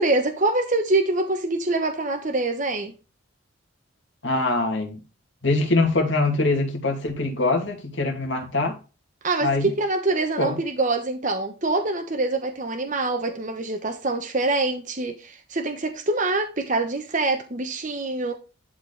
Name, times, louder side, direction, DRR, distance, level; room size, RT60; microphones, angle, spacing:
voice 1, 0.0-2.9 9.2-18.3, right 2 dB, 40° right, 1.0 m, -25 dB
voice 2, 4.2-5.0 5.4-8.8 9.4-9.7 10.4-10.5, left 2 dB, 60° left, 2.5 m, -23 dB
11.5 x 4.4 x 3.4 m
head